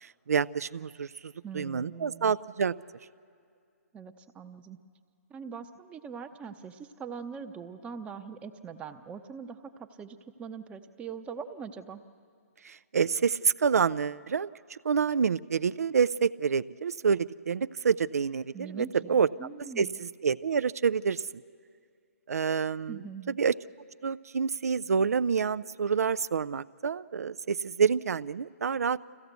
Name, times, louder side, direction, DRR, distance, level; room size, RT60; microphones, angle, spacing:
voice 1, 0.0-2.7 12.6-19.3 19.8-21.2 22.3-23.0 23.3-23.5 24.0-29.0, right 6 dB, 75° right, 15 dB, 0.5 m, -28 dB
voice 2, 1.4-2.3 3.9-4.8 5.3-12.0 18.5-20.0 22.9-23.4, right 6 dB, 15° right, 8 dB, 0.8 m, -42 dB
25.5 x 15.5 x 8.1 m, 2.3 s
hypercardioid pair, 135°, 8 cm